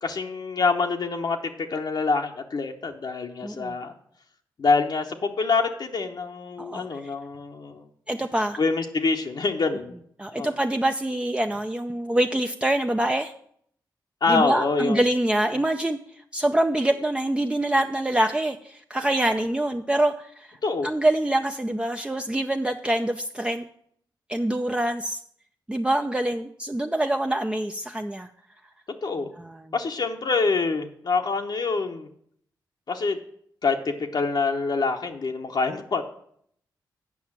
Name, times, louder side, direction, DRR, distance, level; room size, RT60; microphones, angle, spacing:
voice 1, 0.0-3.9 4.6-7.9 8.6-9.9 10.3-10.5 14.2-15.0 15.5-15.6 20.6-20.9 29.0-29.3 29.7-32.1 32.9-33.2 33.6-36.0, left 4 dB, 60° left, 3 dB, 1.0 m, -26 dB
voice 2, 3.4-3.7 6.6-6.9 8.1-8.6 10.2-13.3 14.3-16.0 16.3-20.5 20.8-23.6 24.3-25.2 25.7-28.3 29.4-29.6, right 1 dB, 10° right, 5 dB, 0.5 m, -25 dB
8.5 x 5.6 x 7.3 m, 0.65 s
cardioid pair, 60°, 8 cm